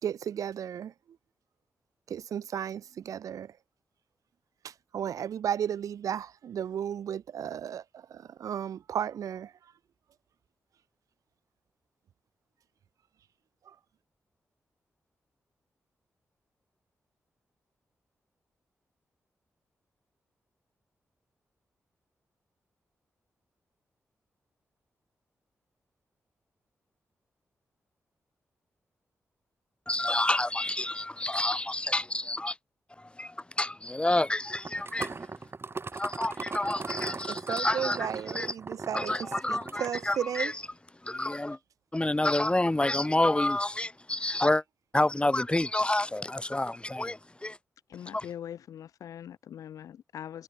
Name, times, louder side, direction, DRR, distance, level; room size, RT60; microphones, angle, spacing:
voice 1, 0.0-0.9 2.1-3.5 4.6-7.8 8.1-9.5 37.3-40.5, right 9 dB, 85° right, 2.9 m, -34 dB
voice 2, 29.9-32.6 33.0-35.1 35.9-38.5 38.9-40.6 41.0-41.6 41.9-44.6 44.9-47.6 48.1-48.3, left 1 dB, 20° left, 4.5 m, -29 dB
sound 1, 34.5-40.2, right 4 dB, 45° right, 7.6 m, -38 dB
voice 3, 47.9-50.4, left 9 dB, 90° left, 5.0 m, -42 dB
cardioid pair, 55°, 6 cm